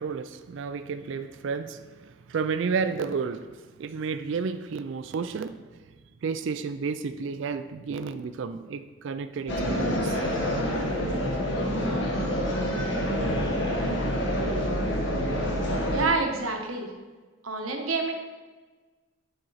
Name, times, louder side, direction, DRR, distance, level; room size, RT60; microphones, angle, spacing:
voice 1, 0.0-3.5 3.8-5.6 6.2-10.2, right 5 dB, 65° right, 9 dB, 0.3 m, -31 dB
sound 1, 9.5-16.1, equal, 60° left, 1.1 m, -27 dB
voice 2, 15.9-16.9 17.4-18.2, right 3 dB, 80° right, 3 dB, 1.0 m, -27 dB
9.1 x 4.3 x 4.0 m, 1.3 s
head